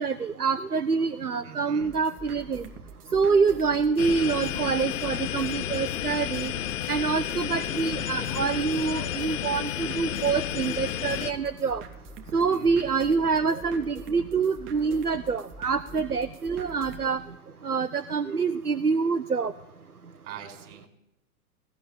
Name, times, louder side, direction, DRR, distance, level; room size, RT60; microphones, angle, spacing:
voice 1, 0.0-2.6 3.1-6.5 6.9-11.8 12.3-17.2 17.6-19.5, right 5 dB, 85° right, 11 dB, 1.2 m, -26 dB
voice 2, 1.4-1.9 12.5-12.9 20.2-20.9, right 9 dB, 50° right, 5 dB, 5.4 m, -43 dB
sound 1, 1.8-17.1, right 3 dB, 25° right, 2.9 m, -45 dB
sound 2, 4.0-11.3, left 11 dB, 55° left, 1.4 m, -31 dB
19.0 x 17.5 x 8.7 m, 0.90 s
figure-of-eight pair, 105°, 45 cm